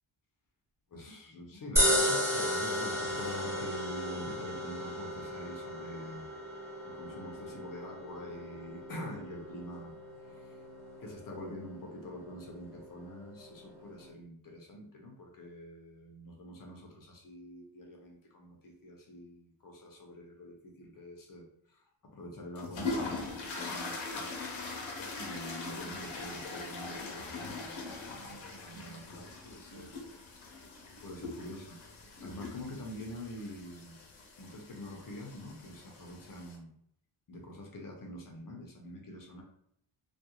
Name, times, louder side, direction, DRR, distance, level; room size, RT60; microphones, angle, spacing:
voice 1, 0.9-6.3 6.8-9.9 10.3-10.6 11.0-24.4 25.2-30.2 31.0-34.0 34.4-36.7 37.3-39.4, left 1 dB, 45° left, 1 dB, 0.6 m, -46 dB
sound 1, 1.8-14.1, equal, 5° right, 0.5 m, -35 dB
sound 2, 22.6-36.6, left 3 dB, 85° left, 0.7 m, -41 dB
2.3 x 2.2 x 2.8 m, 0.71 s
wide cardioid pair, 165°, 46 cm